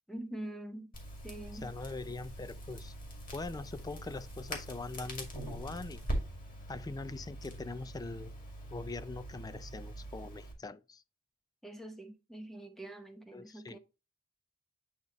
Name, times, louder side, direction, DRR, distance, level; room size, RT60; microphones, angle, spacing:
voice 1, 0.1-0.9 1.2-1.7 11.6-13.8, right 1 dB, ahead, 0.9 m, -44 dB
Crackle, 0.9-10.5, right 1 dB, 40° left, 2.4 m, -43 dB
voice 2, 1.5-2.9 3.3-6.0 6.7-8.4 8.7-11.0 13.3-13.8, left 3 dB, 15° left, 0.3 m, -42 dB
8.6 x 4.0 x 2.9 m
head